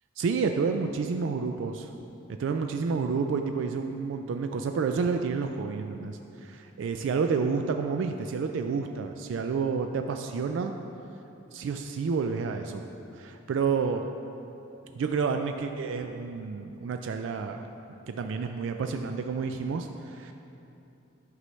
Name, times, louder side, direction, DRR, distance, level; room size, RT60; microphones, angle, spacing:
voice 1, 0.2-1.9 2.4-10.7 11.5-12.8 13.2-14.0 15.0-17.6 18.1-20.3, right 5 dB, 65° right, 5 dB, 0.3 m, -29 dB
9.5 x 5.4 x 3.1 m, 2.8 s
head